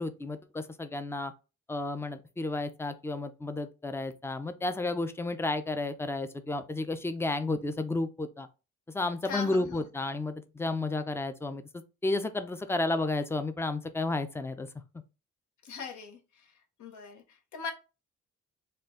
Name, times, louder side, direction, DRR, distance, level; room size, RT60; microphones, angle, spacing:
voice 1, 0.0-1.3 1.7-8.5 8.9-11.6 12.0-14.7, left 2 dB, 10° left, 0.5 m, -32 dB
voice 2, 9.2-9.9 15.6-16.5 16.8-17.7, left 5 dB, 75° left, 1.2 m, -40 dB
4.4 x 2.4 x 3.6 m
cardioid pair, 90°, 30 cm